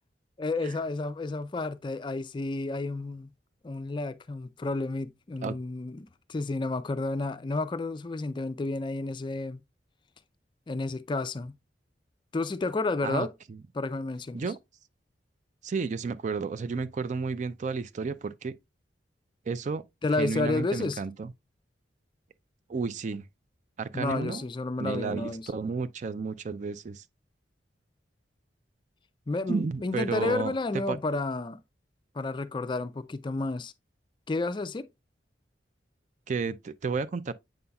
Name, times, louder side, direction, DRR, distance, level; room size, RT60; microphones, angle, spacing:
voice 1, 0.4-3.3 3.6-9.6 10.7-11.6 12.3-13.3 13.7-14.4 20.0-21.0 23.9-25.5 29.3-31.6 32.1-33.7 34.3-34.9, left 3 dB, 25° left, 0.4 m, -31 dB
voice 2, 13.0-13.6 14.3-14.6 15.6-18.5 19.5-19.8 20.2-21.3 22.7-23.2 23.8-24.4 24.8-27.0 29.5-30.5 30.9-31.0 36.3-37.3, right 4 dB, 45° right, 0.4 m, -32 dB
7.7 x 5.5 x 2.3 m
head